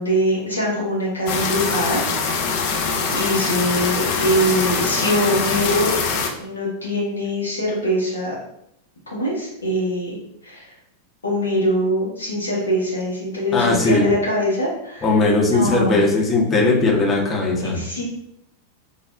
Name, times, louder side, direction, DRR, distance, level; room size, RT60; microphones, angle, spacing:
voice 1, 0.0-2.0 2.8-5.9 6.4-8.3 9.1-10.2 10.4-10.6 11.2-15.1 15.5-16.0 17.6-18.0, equal, 75° left, -5 dB, 1.2 m, -23 dB
sound 1, 1.3-6.3, left 4 dB, 50° left, 0.4 m, -23 dB
voice 2, 13.5-14.1 15.0-17.8, left 3 dB, 20° left, -2 dB, 0.7 m, -18 dB
3.6 x 2.0 x 2.4 m, 0.76 s
figure-of-eight pair, 90°, 0 cm